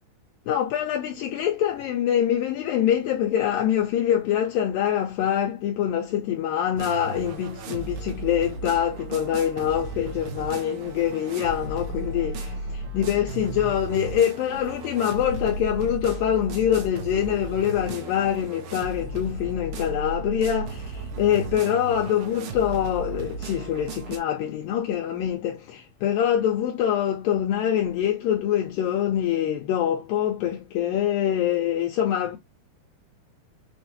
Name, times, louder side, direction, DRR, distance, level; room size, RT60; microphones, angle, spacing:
voice 1, 0.5-32.4, left 10 dB, 85° left, 2.1 m, -25 dB
sound 1, 6.8-24.2, right 3 dB, 70° right, 2.8 m, -35 dB
6.9 x 2.6 x 2.9 m
omnidirectional pair, 4.7 m